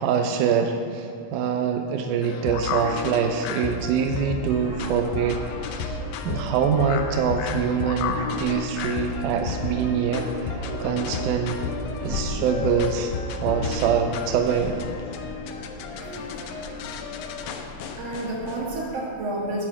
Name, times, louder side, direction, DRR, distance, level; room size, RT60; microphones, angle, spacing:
voice 1, 0.0-6.0 6.3-11.6 12.0-14.8, right 6 dB, 85° right, 5 dB, 1.8 m, -25 dB
sound 1, 2.2-18.6, left 4 dB, 85° left, 2.4 m, -32 dB
sound 2, 4.6-18.9, left 1 dB, 65° right, 3.6 m, -37 dB
voice 2, 18.0-19.7, right 1 dB, 50° right, -5 dB, 2.7 m, -30 dB
11.0 x 4.8 x 7.3 m, 2.6 s
omnidirectional pair, 4.1 m